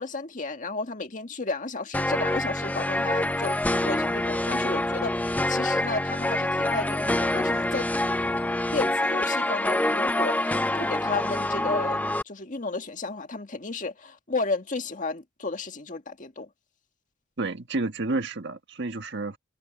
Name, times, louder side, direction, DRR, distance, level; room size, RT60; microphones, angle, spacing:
voice 1, 0.0-7.9 8.7-12.0 12.3-16.5, left 3 dB, 40° left, 1.8 m, -33 dB
sound 1, 1.9-12.2, left 1 dB, 10° left, 0.5 m, -26 dB
voice 2, 17.4-19.4, right 3 dB, 60° right, 1.5 m, -30 dB
head